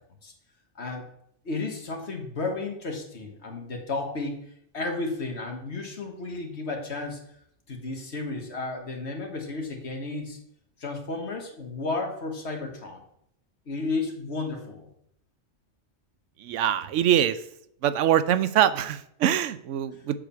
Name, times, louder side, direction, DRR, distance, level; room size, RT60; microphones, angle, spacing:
voice 1, 1.5-4.4 4.7-7.2 7.7-10.4 10.8-13.0 13.7-14.9 20.0-20.2, left 3 dB, 65° left, 3 dB, 1.8 m, -33 dB
voice 2, 16.4-17.4 17.8-20.2, right 10 dB, 90° right, 14 dB, 0.9 m, -23 dB
7.4 x 4.9 x 6.9 m, 0.72 s
omnidirectional pair, 1.2 m